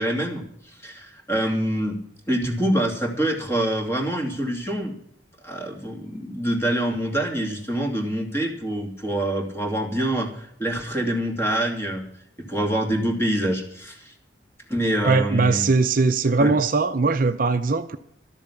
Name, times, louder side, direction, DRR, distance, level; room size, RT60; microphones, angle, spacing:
voice 1, 0.0-2.0 2.3-4.9 5.4-12.1 12.5-14.1 14.7-15.7 16.4-16.5, right 1 dB, 15° left, 2.7 m, -25 dB
voice 2, 15.0-18.0, right 3 dB, 45° right, 0.6 m, -20 dB
13.0 x 7.2 x 9.8 m
head